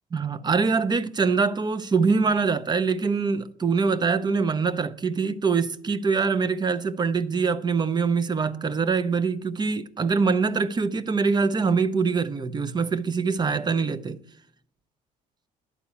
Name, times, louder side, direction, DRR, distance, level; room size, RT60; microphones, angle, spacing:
voice 1, 0.1-14.2, right 5 dB, 25° right, 0.6 m, -24 dB
11.5 x 4.3 x 8.0 m
cardioid pair, 110°, 17 cm